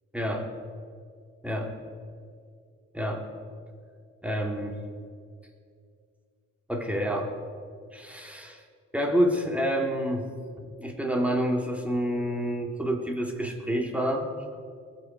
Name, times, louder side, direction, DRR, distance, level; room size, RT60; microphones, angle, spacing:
voice 1, 0.1-0.5 1.4-1.7 2.9-3.2 4.2-4.8 6.7-7.4 7.9-8.6 8.9-10.3 10.6-14.6, equal, 5° right, 1 dB, 2.8 m, -28 dB
21.0 x 7.0 x 4.7 m, 2.2 s
supercardioid pair, 55°, 30 cm